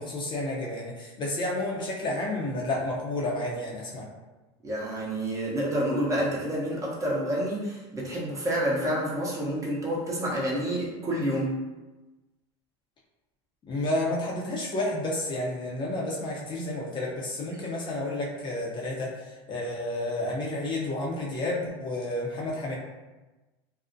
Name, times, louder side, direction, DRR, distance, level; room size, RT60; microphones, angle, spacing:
voice 1, 0.0-4.1 13.7-22.8, left 1 dB, 35° left, -3 dB, 0.6 m, -31 dB
voice 2, 4.6-11.5 17.5-17.6, right 1 dB, 25° right, -5 dB, 0.8 m, -28 dB
2.4 x 2.0 x 2.6 m, 1.1 s
hypercardioid pair, 95°, 14 cm